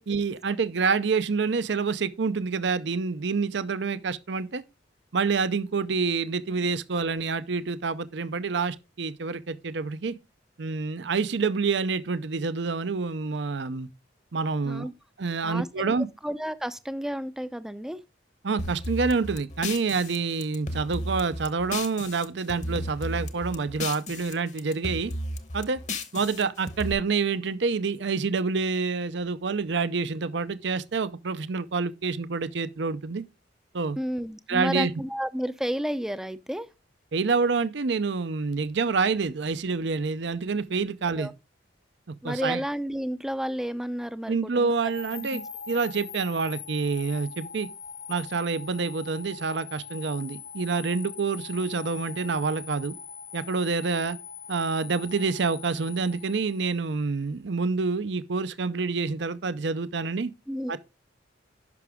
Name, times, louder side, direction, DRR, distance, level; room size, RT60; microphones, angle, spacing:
voice 1, 0.1-4.6 5.1-10.1 10.6-13.9 14.3-14.9 15.2-16.1 18.4-25.1 25.5-25.8 26.1-33.2 33.7-34.0 34.5-34.9 37.1-41.3 42.1-42.6 44.3-47.7 48.1-52.9 53.3-54.2 54.5-60.3 60.7-60.8, right 4 dB, 65° right, 0.6 m, -27 dB
voice 2, 15.4-15.9 16.2-18.0 34.0-36.7 41.1-41.3 42.2-44.7 45.2-45.4 60.5-60.8, equal, 5° right, 0.5 m, -31 dB
sound 1, 18.6-22.2 22.5-24.3 24.6-26.9, left 1 dB, 40° left, 1.0 m, -34 dB
sound 2, 44.8-57.0, left 6 dB, 70° left, 1.4 m, -42 dB
11.0 x 6.0 x 3.6 m
head